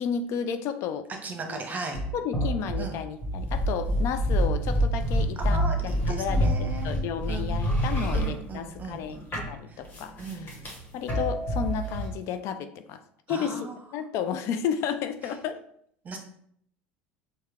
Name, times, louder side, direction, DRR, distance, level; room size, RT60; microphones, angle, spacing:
voice 1, 0.0-1.1 1.5-1.6 2.1-10.6 10.9-13.0 13.3-15.6, left 7 dB, 55° left, 10 dB, 0.3 m, -32 dB
voice 2, 1.2-2.0 2.8-3.0 3.9-4.0 5.5-6.9 7.3-7.5 8.1-9.3 9.7-9.8 10.2-10.5 13.3-13.8 16.0-16.2, right 3 dB, 30° right, 3 dB, 0.9 m, -37 dB
sound 1, 1.9-9.1 9.3-12.1, equal, 35° left, 1.5 m, -27 dB
4.4 x 2.1 x 3.4 m, 0.68 s
hypercardioid pair, 80°, 6 cm